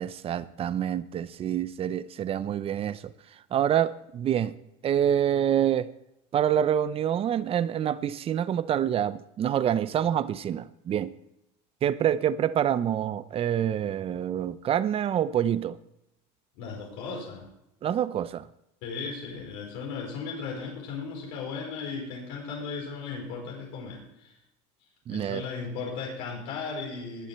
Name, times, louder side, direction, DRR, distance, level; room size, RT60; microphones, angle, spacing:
voice 1, 0.0-3.1 3.5-4.5 4.8-5.9 6.3-11.1 11.8-15.8 17.8-18.4 25.1-25.4, right 10 dB, 35° right, 0.7 m, -26 dB
voice 2, 16.6-17.5 18.8-24.3 25.1-27.3, left 5 dB, 80° left, 4.8 m, -36 dB
20.0 x 7.2 x 4.4 m
supercardioid pair, 120°, 16 cm